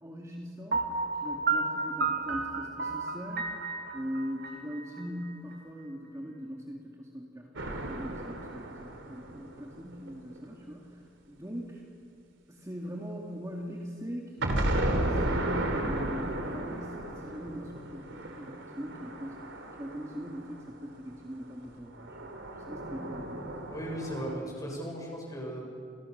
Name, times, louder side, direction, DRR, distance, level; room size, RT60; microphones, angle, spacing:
voice 1, 0.0-3.4 3.9-11.9 12.5-23.5, equal, 15° right, -1 dB, 2.3 m, -41 dB
Piano, 0.7-5.6, right 4 dB, 50° right, 2.4 m, -32 dB
sound 1, 7.6-10.4 14.4-20.7 21.9-24.4, right 1 dB, 70° right, 3.5 m, -34 dB
voice 2, 23.7-25.7, equal, 20° left, -1 dB, 7.5 m, -37 dB
29.5 x 29.0 x 6.7 m, 2.3 s
head